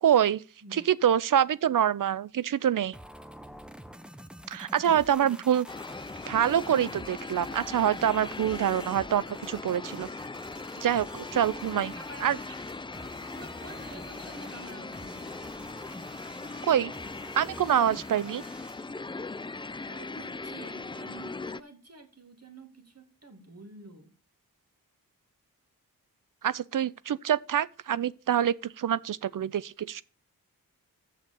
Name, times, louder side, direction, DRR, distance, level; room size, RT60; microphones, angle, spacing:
voice 1, 0.0-0.4 0.7-3.0 4.5-5.6 6.3-10.1 10.8-11.9 12.2-12.4 16.6-16.9 17.3-18.4 26.4-30.0, right 10 dB, 60° right, 0.5 m, -26 dB
sound 1, 2.9-18.9, equal, ahead, 0.8 m, -48 dB
voice 2, 4.8-5.4 11.9-12.6 13.4-15.3 19.8-24.1, right 2 dB, 40° right, 2.4 m, -48 dB
sound 2, 5.7-21.6, left 3 dB, 15° left, 0.4 m, -40 dB
6.9 x 6.4 x 6.9 m
cardioid pair, 40°, 38 cm